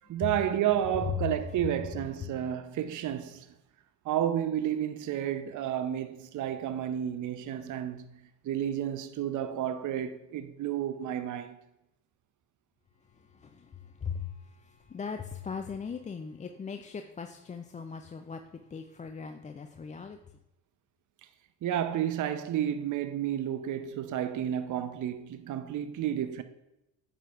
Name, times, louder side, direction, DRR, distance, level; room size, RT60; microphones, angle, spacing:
voice 1, 0.1-3.5 4.0-11.6 21.6-26.4, right 10 dB, 40° right, 0.7 m, -31 dB
voice 2, 0.7-2.3 13.0-20.2, left 6 dB, 15° left, 0.4 m, -39 dB
9.0 x 6.6 x 2.5 m
hypercardioid pair, 60°, 48 cm